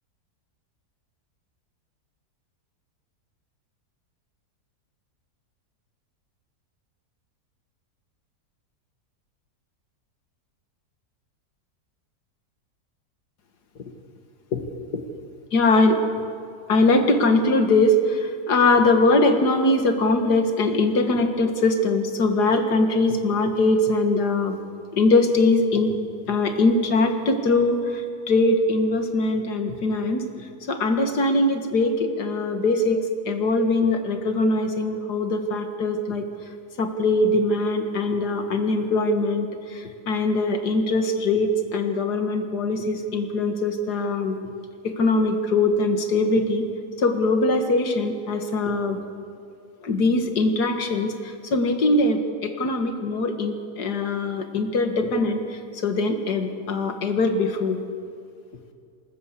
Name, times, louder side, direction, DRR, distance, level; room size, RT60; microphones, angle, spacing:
voice 1, 15.5-16.0 16.7-24.6 24.9-25.9 26.3-27.8 28.3-30.3 30.7-36.3 36.8-39.5 39.7-44.4 44.8-46.7 47.0-49.0 49.8-51.1 51.5-55.4 55.8-57.8, left 2 dB, 80° left, 6 dB, 2.3 m, -21 dB
27.0 x 13.5 x 8.3 m, 2.4 s
omnidirectional pair, 1.7 m